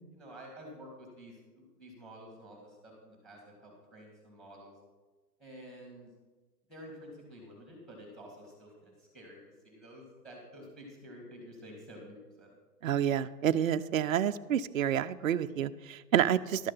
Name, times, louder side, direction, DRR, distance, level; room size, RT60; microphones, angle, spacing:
voice 1, 0.1-4.7 5.4-6.1 6.7-12.5, equal, ahead, 0 dB, 2.6 m, -50 dB
voice 2, 12.8-16.7, right 9 dB, 55° right, 9 dB, 0.5 m, -29 dB
12.0 x 6.4 x 5.6 m, 1.2 s
hypercardioid pair, 145°, 49 cm